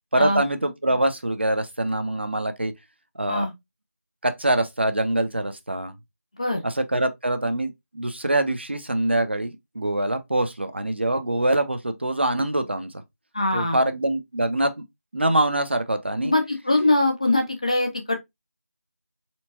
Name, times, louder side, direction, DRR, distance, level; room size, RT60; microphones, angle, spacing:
voice 1, 0.1-2.7 3.2-3.5 4.2-5.9 6.6-12.9 13.5-14.7 15.1-16.3, right 1 dB, 45° right, 0.7 m, -24 dB
voice 2, 13.3-13.8 16.2-18.2, left 2 dB, 25° left, 0.7 m, -22 dB
4.4 x 3.7 x 2.9 m
figure-of-eight pair, 170°, 8 cm